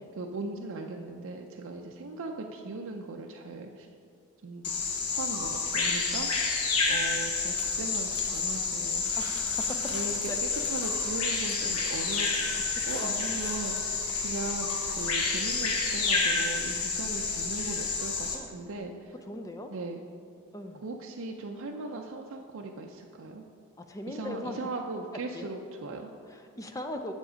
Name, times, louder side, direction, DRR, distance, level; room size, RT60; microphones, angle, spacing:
voice 1, 0.2-3.9 4.4-4.7 5.1-6.3 6.9-9.3 9.9-19.1 19.7-20.0 20.8-23.4 24.1-26.1, right 3 dB, 65° right, 1 dB, 0.5 m, -39 dB
Bird vocalization bird call bird song, 4.6-18.3, left 4 dB, 85° left, 1.1 m, -29 dB
voice 2, 9.2-9.8 10.3-10.4 12.7-13.3 18.3-18.5 19.3-19.7 20.5-20.8 23.9-24.6 25.3-25.5 26.3-27.1, left 1 dB, 15° left, 5 dB, 0.5 m, -39 dB
7.4 x 7.0 x 5.0 m, 2.3 s
head